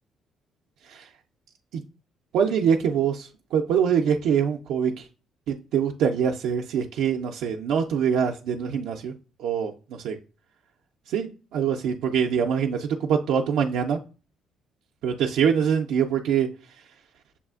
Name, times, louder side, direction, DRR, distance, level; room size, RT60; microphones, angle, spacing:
voice 1, 2.3-5.1 5.5-9.1 9.4-10.2 11.1-14.0 15.0-16.5, right 7 dB, 80° right, 2 dB, 0.4 m, -24 dB
6.8 x 2.4 x 2.3 m, 0.35 s
cardioid pair, 85°, 0 cm